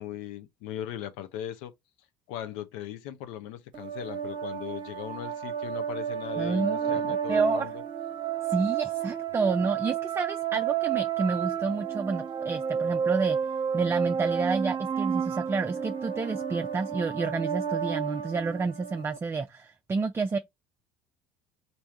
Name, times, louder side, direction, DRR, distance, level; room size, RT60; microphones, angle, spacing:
voice 1, 0.0-1.7 2.3-7.8, left 11 dB, 65° left, 0.6 m, -39 dB
sound 1, 3.7-19.2, right 7 dB, 40° right, 0.9 m, -31 dB
voice 2, 6.4-7.7 8.5-13.4 13.7-20.4, right 4 dB, 20° right, 0.5 m, -29 dB
3.4 x 2.7 x 4.4 m
hypercardioid pair, 65°, 13 cm